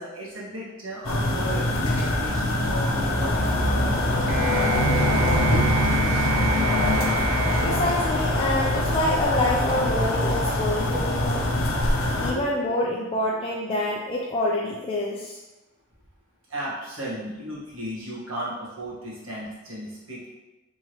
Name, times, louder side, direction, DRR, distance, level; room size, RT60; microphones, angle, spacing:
voice 1, 0.0-6.3 12.3-12.5 16.5-20.3, equal, 75° right, -6 dB, 1.5 m, -35 dB
sound 1, 1.0-12.3, left 1 dB, 75° left, 0.7 m, -23 dB
sound 2, 4.3-8.8, right 8 dB, 30° right, 0.5 m, -31 dB
voice 2, 7.6-11.5 12.2-15.4, left 1 dB, 25° left, -4 dB, 0.4 m, -27 dB
4.7 x 3.6 x 3.0 m, 1.0 s
head